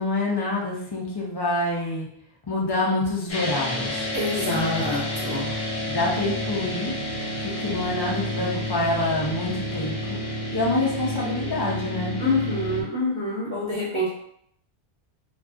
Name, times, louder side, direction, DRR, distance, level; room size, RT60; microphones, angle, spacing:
voice 1, 0.0-2.1 2.5-4.1 4.5-4.9 5.9-6.9 7.4-10.2 10.5-12.2, left 2 dB, 35° left, -4 dB, 0.4 m, -26 dB
sound 1, 3.3-12.8, left 1 dB, 70° left, 1.0 m, -30 dB
voice 2, 4.1-5.6 12.2-14.1, left 2 dB, 30° right, -8 dB, 0.8 m, -26 dB
2.6 x 2.3 x 2.3 m, 0.69 s
omnidirectional pair, 1.1 m